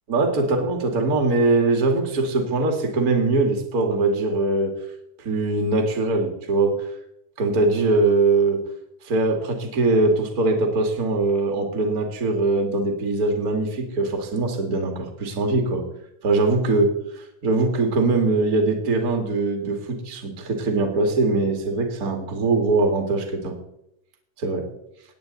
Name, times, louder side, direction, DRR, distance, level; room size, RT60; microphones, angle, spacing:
voice 1, 0.1-4.7 5.2-6.8 7.4-8.6 9.0-15.8 16.2-23.5 24.4-24.6, right 3 dB, 30° right, 3 dB, 2.2 m, -22 dB
18.0 x 9.3 x 4.1 m, 0.79 s
omnidirectional pair, 3.7 m